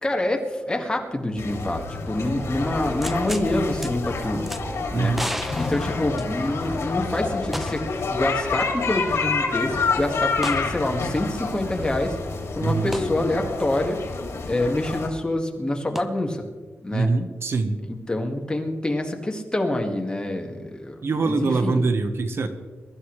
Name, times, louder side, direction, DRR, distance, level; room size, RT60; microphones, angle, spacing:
voice 1, 0.0-4.5 4.9-5.2 5.5-12.2 12.5-14.0 14.5-16.5 16.8-17.1 17.9-21.9, left 1 dB, 20° left, 2 dB, 2.0 m, -26 dB
sound 1, 1.4-15.1, left 4 dB, 75° left, 2.9 m, -28 dB
sound 2, 3.0-3.5 3.8-3.9 4.5-4.6 5.1-6.7 7.5-8.0 8.3-8.4 10.4-10.7 12.9-13.1 15.9-16.0, equal, 5° right, 0.9 m, -32 dB
voice 2, 4.9-5.3 12.6-12.9 16.9-17.8 21.0-22.5, right 3 dB, 60° right, 8 dB, 1.2 m, -23 dB
23.0 x 13.0 x 3.3 m, 1.4 s
wide cardioid pair, 105°, 5 cm